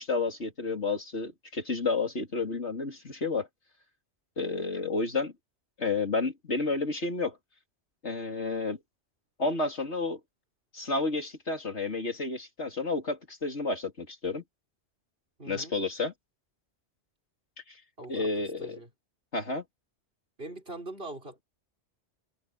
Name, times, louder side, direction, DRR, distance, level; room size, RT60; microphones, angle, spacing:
voice 1, 0.0-3.5 4.4-5.3 5.8-7.4 8.0-8.8 9.4-10.2 10.7-14.4 15.5-16.1 17.7-17.8 18.1-18.8 19.3-19.6, left 3 dB, 80° left, 3.7 m, -31 dB
voice 2, 15.4-15.8 18.0-18.2 18.6-18.9 20.4-21.4, right 2 dB, 55° right, 5.4 m, -41 dB
omnidirectional pair, 1.1 m